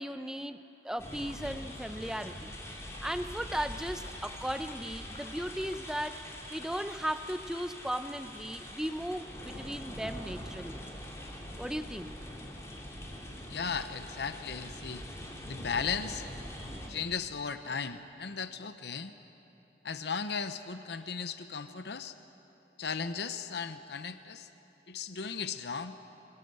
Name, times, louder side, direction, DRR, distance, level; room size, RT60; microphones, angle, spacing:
voice 1, 0.0-2.5 3.0-6.2 6.5-10.8 11.6-12.1, equal, 5° right, 9 dB, 0.7 m, -36 dB
sound 1, 0.9-7.8, left 3 dB, 40° left, 1.9 m, -57 dB
sound 2, 1.0-16.9, left 1 dB, 15° left, 2.9 m, -44 dB
voice 2, 13.5-15.0 15.4-16.2 16.9-19.1 19.8-22.2 22.8-24.5 24.9-26.0, left 6 dB, 70° left, 10 dB, 0.8 m, -36 dB
27.0 x 21.5 x 7.8 m, 3.0 s
head